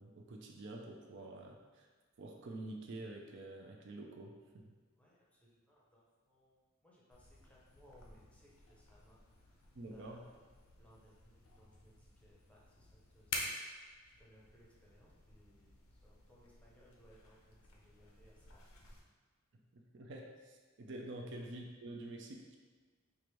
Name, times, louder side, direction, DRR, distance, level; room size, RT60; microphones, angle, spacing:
voice 1, 0.0-1.9 2.2-4.6 9.7-10.2 19.7-22.6, right 2 dB, 55° right, 1 dB, 0.4 m, -48 dB
voice 2, 4.9-10.4 10.8-19.0 21.2-21.4, equal, 5° left, -5 dB, 0.6 m, -66 dB
sound 1, 7.1-19.0, left 3 dB, 80° left, 0.6 m, -50 dB
4.6 x 2.6 x 3.1 m, 1.4 s
head